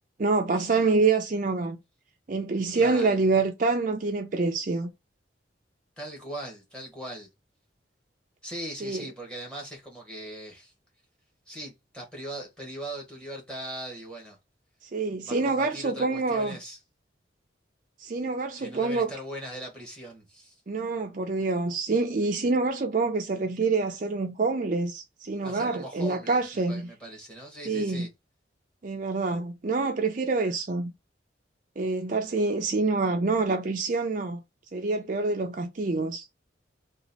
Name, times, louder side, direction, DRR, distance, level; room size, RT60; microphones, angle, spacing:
voice 1, 0.2-1.8 2.3-4.9 8.8-9.1 14.9-16.6 18.0-19.1 20.7-26.9 27.7-28.1 28.8-30.9 31.8-34.4 34.7-36.2, right 3 dB, 45° right, 0.5 m, -26 dB
voice 2, 2.7-3.2 6.0-7.3 8.4-10.7 11.5-14.4 15.2-16.8 18.6-20.5 25.4-28.1, right 1 dB, 5° left, 1.2 m, -40 dB
3.0 x 2.4 x 3.9 m
head